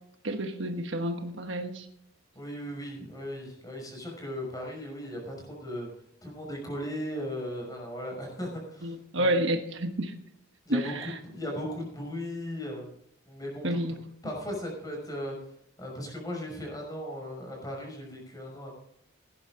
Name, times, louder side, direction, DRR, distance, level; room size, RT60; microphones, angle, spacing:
voice 1, 0.2-1.9 8.8-10.1 10.7-11.2 13.6-14.0, right 1 dB, 60° right, 5 dB, 1.3 m, -29 dB
voice 2, 2.4-5.9 6.2-9.4 10.7-12.9 13.3-13.7 14.2-15.3 15.8-18.7, equal, 20° left, 0 dB, 5.5 m, -37 dB
17.5 x 10.5 x 3.8 m, 0.74 s
head